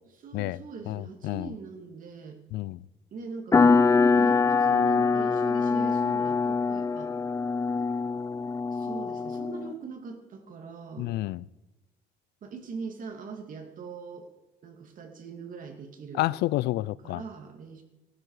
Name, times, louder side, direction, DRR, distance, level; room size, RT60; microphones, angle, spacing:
voice 1, 0.0-2.4 3.1-3.8 4.1-7.1 8.7-11.1 12.4-14.3 14.6-16.3 17.0-17.8, right 5 dB, 55° right, 2.4 m, -41 dB
voice 2, 0.9-1.5 2.5-2.8 11.0-11.4 16.1-17.2, left 17 dB, 80° left, 0.4 m, -29 dB
sound 1, 3.5-9.7, left 4 dB, 20° left, 0.6 m, -24 dB
18.5 x 12.5 x 4.9 m
cardioid pair, 110°, 17 cm